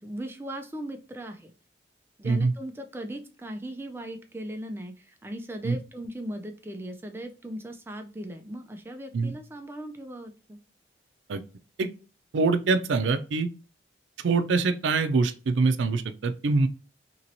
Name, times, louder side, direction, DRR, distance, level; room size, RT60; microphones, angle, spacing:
voice 1, 0.0-1.5 2.2-10.6, right 1 dB, 10° right, 0.3 m, -38 dB
voice 2, 12.3-13.5 14.2-16.7, right 4 dB, 90° right, 0.4 m, -24 dB
2.9 x 2.9 x 2.6 m
head